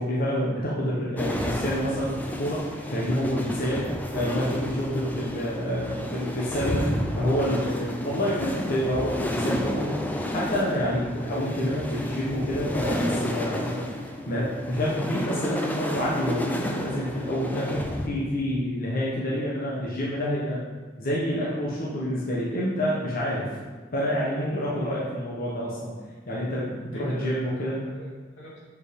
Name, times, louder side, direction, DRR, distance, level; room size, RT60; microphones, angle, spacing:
voice 1, 0.0-3.9 4.1-6.9 7.2-13.9 14.3-20.6 21.0-23.5 23.9-25.9 26.3-27.8, equal, 50° left, -6 dB, 1.2 m, -28 dB
sound 1, 1.2-18.1, equal, 10° left, 0.6 m, -31 dB
voice 2, 7.8-8.2 19.9-20.0 24.4-24.9 26.9-28.6, right 1 dB, 85° left, -6 dB, 2.5 m, -42 dB
6.7 x 4.8 x 5.3 m, 1.4 s
head